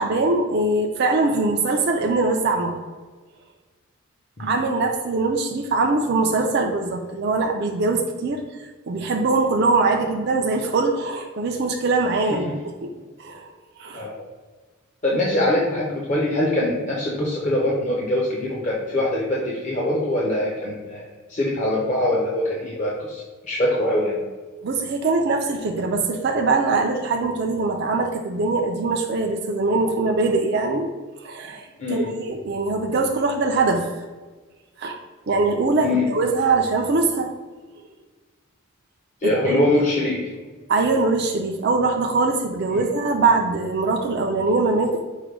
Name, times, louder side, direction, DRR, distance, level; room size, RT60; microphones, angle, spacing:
voice 1, 0.0-2.8 4.4-8.4 8.9-12.9 13.2-13.5 13.8-14.1 24.6-30.9 31.2-33.9 34.8-35.0 35.3-37.3 39.2-39.5 40.7-45.0, right 3 dB, 50° right, 3 dB, 0.4 m, -22 dB
voice 2, 15.0-24.2 31.8-32.1 35.8-36.1 39.2-40.3 42.7-42.8, left 1 dB, 35° left, -4 dB, 0.6 m, -23 dB
4.9 x 2.2 x 4.8 m, 1.4 s
head